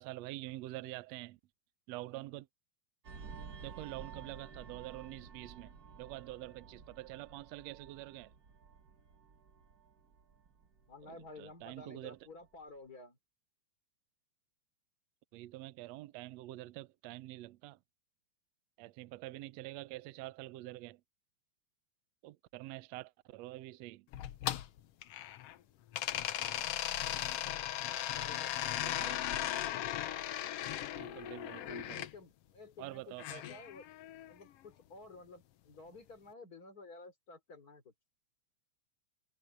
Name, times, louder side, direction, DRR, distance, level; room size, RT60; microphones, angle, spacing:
voice 1, 0.0-1.4 1.9-2.5 3.6-8.3 11.0-12.2 15.3-17.8 18.8-21.0 22.2-24.1 28.8-29.6 31.0-32.1 32.8-33.4, right 17 dB, 75° right, 1.5 m, -46 dB
sound 1, 3.0-12.1 12.4-12.7, right 5 dB, 60° right, 0.9 m, -52 dB
voice 2, 10.9-13.2 27.7-29.0 31.9-33.8 34.3-37.9, left 3 dB, 25° left, 3.5 m, -53 dB
sound 2, 24.1-25.6 25.9-32.1 33.2-34.3, left 12 dB, 90° left, 1.3 m, -37 dB
omnidirectional pair, 3.9 m